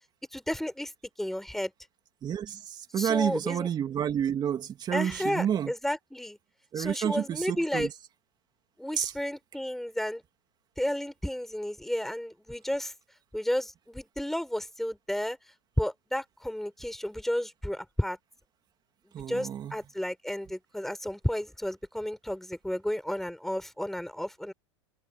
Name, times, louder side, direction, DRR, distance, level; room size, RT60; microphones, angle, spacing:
voice 1, 0.3-0.9 1.2-1.7 3.0-3.7 4.9-6.4 6.8-7.9 8.8-10.2 10.8-12.9 13.3-15.4 15.8-18.2 19.3-24.5, left 1 dB, ahead, 6.2 m, -32 dB
voice 2, 2.2-5.7 6.7-7.9 9.0-9.1 19.1-19.7, right 9 dB, 30° right, 3.2 m, -30 dB
hypercardioid pair, 120°, 15 cm